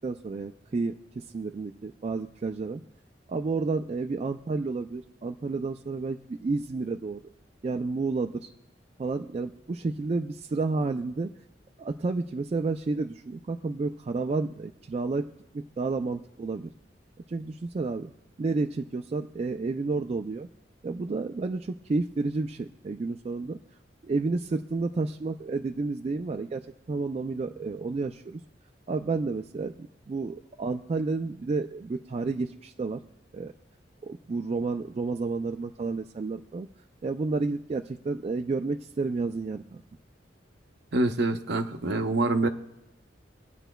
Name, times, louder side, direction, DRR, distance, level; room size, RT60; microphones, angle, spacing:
voice 1, 0.0-2.8 3.3-7.2 7.6-8.5 9.0-11.4 11.8-16.7 17.3-18.1 18.4-20.5 20.8-23.6 24.0-28.4 28.9-33.0 33.3-33.5 34.0-36.7 37.0-39.8, right 3 dB, 35° right, 4 dB, 0.3 m, -31 dB
voice 2, 40.9-42.5, right 2 dB, 65° right, 6 dB, 0.7 m, -25 dB
25.0 x 8.9 x 2.3 m, 0.90 s
head